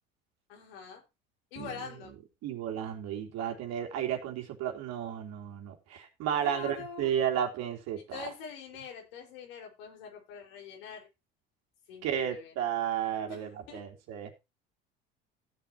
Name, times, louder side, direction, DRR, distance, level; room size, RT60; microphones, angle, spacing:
voice 1, 0.5-1.0 1.5-2.1 6.3-7.1 8.1-11.1 11.9-12.7 13.3-13.9, left 6 dB, 75° left, 4.9 m, -44 dB
voice 2, 1.6-1.9 2.4-8.3 12.0-14.3, right 9 dB, 60° right, 3.4 m, -33 dB
16.0 x 8.2 x 2.9 m
hypercardioid pair, 70°, 30 cm